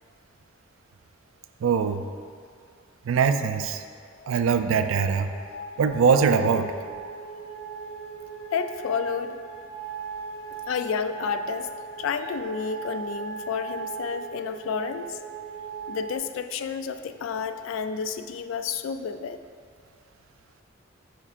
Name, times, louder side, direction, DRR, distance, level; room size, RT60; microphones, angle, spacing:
voice 1, 1.6-2.0 3.1-3.8 4.3-5.3 5.8-6.7, right 6 dB, 80° right, 9 dB, 0.3 m, -22 dB
sound 1, 3.6-16.2, right 5 dB, 50° left, 0.8 m, -38 dB
voice 2, 8.5-9.4 10.7-11.7 12.0-15.2 15.9-19.4, left 6 dB, 80° left, 10 dB, 0.3 m, -30 dB
9.7 x 4.5 x 2.5 m, 2.1 s
head